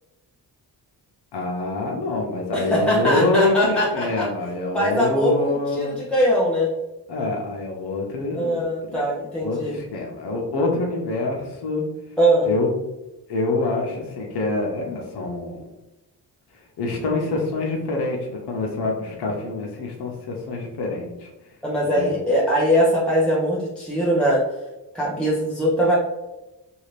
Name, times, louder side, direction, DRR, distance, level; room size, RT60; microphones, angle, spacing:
voice 1, 1.3-5.9 7.1-8.6 8.9-9.0 9.4-11.8 12.4-12.7 13.3-15.6 16.8-21.3 21.8-22.2, left 3 dB, 70° left, -1 dB, 0.8 m, -25 dB
voice 2, 2.5-4.3 4.7-6.7 8.3-9.8 12.2-12.5 21.6-24.4 24.9-26.0, equal, ahead, -5 dB, 0.7 m, -21 dB
2.8 x 2.4 x 3.2 m, 0.99 s
cardioid pair, 75°, 41 cm